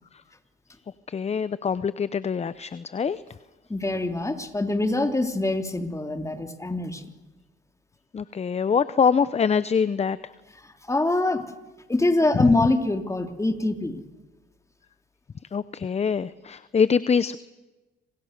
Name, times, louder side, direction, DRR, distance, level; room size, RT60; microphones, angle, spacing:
voice 1, 1.1-3.2 8.1-10.2 12.3-12.5 15.5-17.4, left 6 dB, 35° left, 16 dB, 0.8 m, -24 dB
voice 2, 3.7-7.0 10.6-11.4 11.9-14.0, left 2 dB, 15° left, 7 dB, 3.2 m, -24 dB
28.0 x 26.5 x 6.7 m, 1.1 s
cardioid pair, 90°, 20 cm